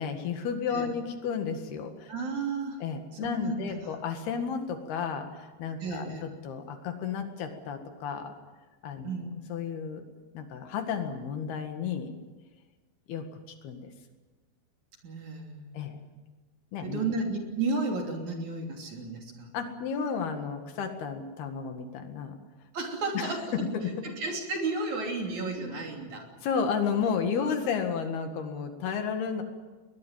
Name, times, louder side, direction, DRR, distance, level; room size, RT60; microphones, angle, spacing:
voice 1, 0.0-2.1 2.8-8.3 8.8-9.1 9.5-10.0 10.3-12.1 13.1-13.9 15.7-16.0 16.7-17.0 19.5-22.4 23.1-23.9 25.6-25.8 26.4-29.4, left 6 dB, 70° left, 6 dB, 3.8 m, -32 dB
voice 2, 2.1-2.8 3.2-3.8 5.8-6.2 9.0-9.3 15.0-16.2 16.8-19.5 22.7-23.5 24.0-26.3, right 3 dB, 45° right, 2 dB, 4.2 m, -33 dB
21.5 x 20.5 x 7.6 m, 1.3 s
omnidirectional pair, 4.8 m